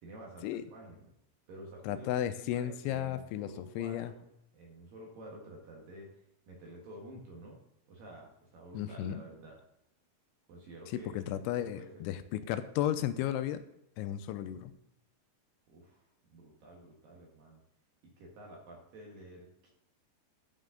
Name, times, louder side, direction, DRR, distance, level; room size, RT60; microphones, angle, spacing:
voice 1, 0.0-1.1 1.5-4.2 4.5-6.1 6.5-7.6 7.9-9.6 10.5-11.2 11.7-12.5 14.2-14.4 15.7-17.6 18.2-19.7, right 1 dB, 60° right, -1 dB, 2.6 m, -50 dB
voice 2, 1.8-4.1 8.7-9.2 11.1-13.6 14.0-14.7, left 11 dB, 85° left, 10 dB, 2.9 m, -34 dB
12.0 x 5.4 x 3.8 m, 0.80 s
omnidirectional pair, 5.4 m